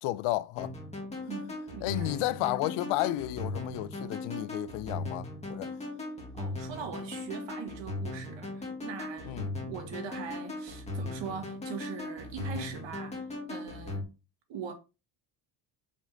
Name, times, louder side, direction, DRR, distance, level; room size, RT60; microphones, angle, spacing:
voice 1, 0.0-0.7 1.8-5.7 9.2-9.6, left 16 dB, 90° left, 0.5 m, -32 dB
sound 1, 0.6-14.0, left 2 dB, 15° left, 1.9 m, -38 dB
voice 2, 1.3-2.1 6.3-14.1 14.5-14.7, right 6 dB, 65° right, 1.8 m, -41 dB
5.4 x 3.8 x 5.2 m
cardioid pair, 135°, 48 cm